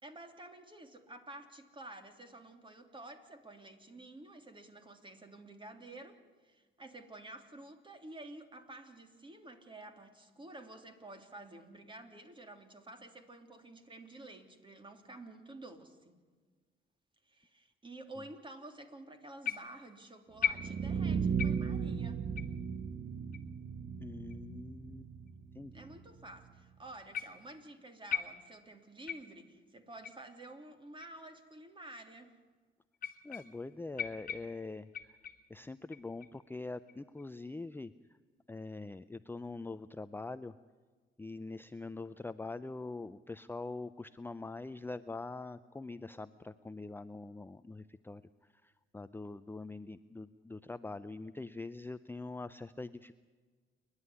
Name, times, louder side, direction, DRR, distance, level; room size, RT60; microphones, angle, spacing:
voice 1, 0.0-16.1 17.3-22.2 25.7-32.3, right 2 dB, 25° right, 6 dB, 3.0 m, -51 dB
sound 1, 19.4-19.9 20.4-21.1 21.4-21.8 22.4-22.6 23.3-23.4 24.3-24.4 25.3-25.4 27.1-27.6 28.1-28.7 29.1-29.5 30.0-30.2 31.0-31.1 32.0-32.1 32.9-33.7 34.0-35.5 35.9-36.4 36.9-37.2, left 8 dB, 45° left, 1.6 m, -39 dB
sound 2, 20.4-26.4, right 6 dB, 50° right, 1.1 m, -36 dB
voice 2, 24.0-25.1 25.6-25.9 33.2-35.2 35.5-37.9 38.5-40.5 41.2-48.2 48.6-53.1, left 3 dB, 10° left, 12 dB, 0.5 m, -44 dB
29.0 x 11.5 x 9.8 m, 1.4 s
cardioid pair, 90°, 20 cm